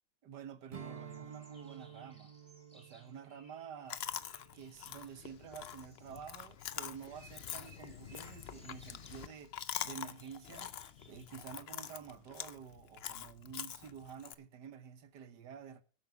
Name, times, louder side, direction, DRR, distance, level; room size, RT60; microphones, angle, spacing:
voice 1, 0.2-2.3 2.7-4.1 4.5-9.6 9.8-10.7 11.1-15.8, right 7 dB, 70° right, 1.7 m, -50 dB
Strum, 0.7-5.4, right 8 dB, 35° right, 0.6 m, -52 dB
sound 1, 1.0-11.2, right 1 dB, 5° left, 3.8 m, -64 dB
Chewing mastication, 3.9-14.3, left 9 dB, 70° left, 0.5 m, -45 dB
12.0 x 8.6 x 5.8 m
omnidirectional pair, 1.9 m